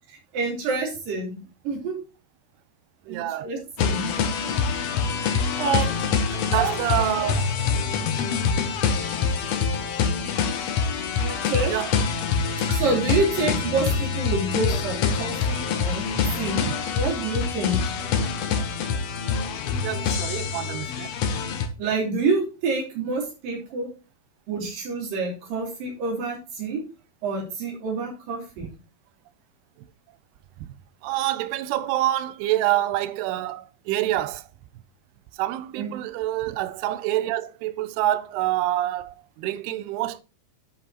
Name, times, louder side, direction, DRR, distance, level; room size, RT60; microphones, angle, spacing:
voice 1, 0.3-1.4 1.6-2.0 3.1-4.1 5.6-6.1 6.5-6.7 11.1-11.8 12.7-16.0 16.4-16.7 16.9-17.8 21.3-21.4 21.8-23.9 24.5-26.8 27.2-28.7 35.8-36.0, right 3 dB, 60° right, 4.6 m, -27 dB
voice 2, 3.1-3.5 6.3-7.4 11.0-11.9 12.7-12.8 16.6-16.7 19.8-21.1 30.6-30.7 31.0-34.5 35.4-40.2, right 14 dB, 90° right, 2.8 m, -27 dB
sound 1, 3.8-21.7, left 6 dB, 75° left, 1.5 m, -25 dB
10.5 x 5.7 x 4.2 m
omnidirectional pair, 4.6 m